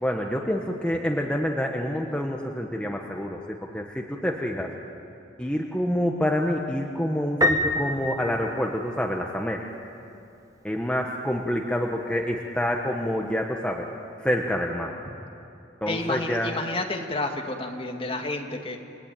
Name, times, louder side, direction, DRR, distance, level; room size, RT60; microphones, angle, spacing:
voice 1, 0.0-4.7 5.4-9.6 10.6-13.9 14.2-14.9 15.8-16.6, equal, 5° left, 0 dB, 1.3 m, -27 dB
Piano, 7.4-9.2, left 1 dB, 20° right, 1.5 m, -26 dB
voice 2, 15.9-18.8, left 2 dB, 30° left, 2 dB, 2.2 m, -30 dB
29.5 x 20.5 x 9.1 m, 2.8 s
head